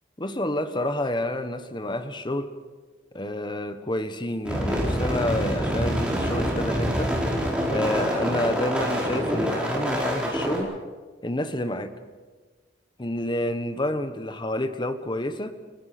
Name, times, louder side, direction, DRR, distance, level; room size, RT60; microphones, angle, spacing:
voice 1, 0.2-2.5 3.1-7.1 7.7-10.7 11.2-11.9 13.0-15.5, left 1 dB, 25° left, 10 dB, 1.3 m, -29 dB
sound 1, 4.4-10.6, equal, 5° right, 4.9 m, -26 dB
30.0 x 18.0 x 6.1 m, 1.4 s
head